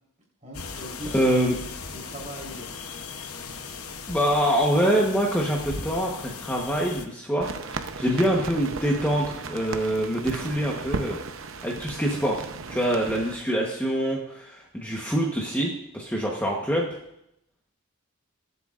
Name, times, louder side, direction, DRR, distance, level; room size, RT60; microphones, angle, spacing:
voice 1, 0.4-1.2 1.9-2.8, equal, 30° right, -3 dB, 4.1 m, -40 dB
sound 1, 0.5-7.1, left 4 dB, 80° left, 1.0 m, -38 dB
voice 2, 1.1-1.6 4.1-11.2 11.6-17.0, equal, 10° left, -2 dB, 1.1 m, -25 dB
sound 2, 7.4-13.4, right 4 dB, 65° right, 0.8 m, -35 dB
22.0 x 8.1 x 2.5 m, 0.79 s
head